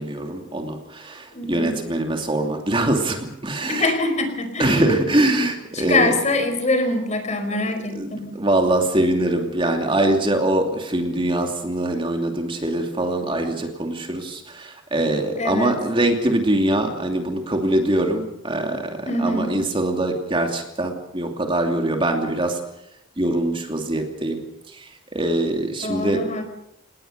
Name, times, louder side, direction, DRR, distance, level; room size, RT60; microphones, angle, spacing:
voice 1, 0.0-3.9 4.6-6.1 8.0-22.6 23.2-24.4 24.7-26.2, right 1 dB, 25° right, 3 dB, 2.8 m, -23 dB
voice 2, 1.3-1.9 3.7-5.0 5.7-8.3 15.4-15.8 19.1-19.6 25.8-26.4, left 2 dB, 35° left, 7 dB, 5.1 m, -24 dB
29.0 x 19.5 x 6.7 m, 0.81 s
head